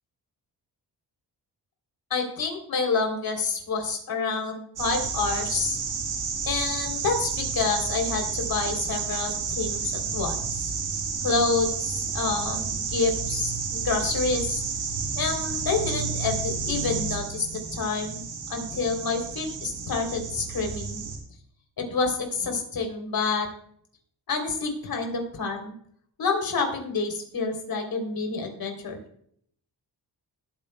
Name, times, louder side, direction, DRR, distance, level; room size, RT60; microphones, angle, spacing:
voice 1, 2.1-5.8 6.5-10.7 11.2-14.6 15.2-18.2 18.5-21.0 21.8-23.5 24.3-25.7 26.2-29.0, left 4 dB, 60° left, 4 dB, 3.5 m, -28 dB
sound 1, 4.8-21.2, right 5 dB, 90° right, 3.3 m, -31 dB
19.5 x 9.0 x 2.3 m, 0.64 s
cardioid pair, 105°, 40 cm